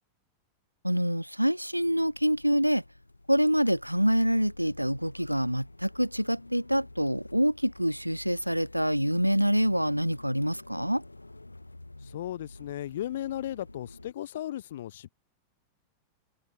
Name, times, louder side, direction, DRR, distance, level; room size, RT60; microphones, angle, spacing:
voice 1, 0.8-2.8 3.3-11.0, equal, 90° right, 0.4 m, -26 dB
sound 1, 1.8-14.1, left 2 dB, 85° left, 4.5 m, -50 dB
voice 2, 12.0-15.2, left 12 dB, 60° left, 0.4 m, -36 dB
figure-of-eight pair, 90°, 0 cm